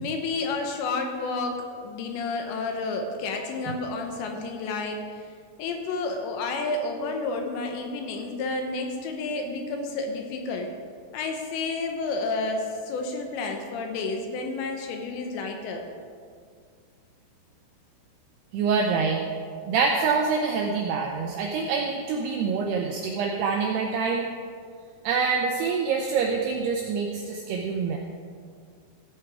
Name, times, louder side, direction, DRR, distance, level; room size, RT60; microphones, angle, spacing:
voice 1, 0.0-5.2 5.6-10.7 11.1-15.9, left 3 dB, 75° left, 3 dB, 3.0 m, -30 dB
voice 2, 18.5-19.2 19.7-24.2 25.0-28.0, right 5 dB, 80° right, 1 dB, 2.4 m, -26 dB
14.5 x 8.0 x 4.8 m, 2.1 s
omnidirectional pair, 5.5 m